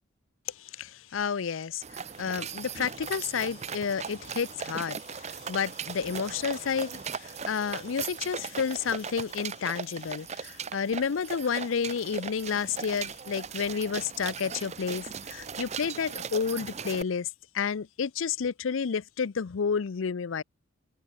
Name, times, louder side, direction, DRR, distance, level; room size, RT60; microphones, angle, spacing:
voice 1, 0.6-17.3 17.5-20.4, left 6 dB, 80° left, 0.5 m, -31 dB
sound 1, 1.8-17.0, right 6 dB, 35° right, 0.7 m, -38 dB
head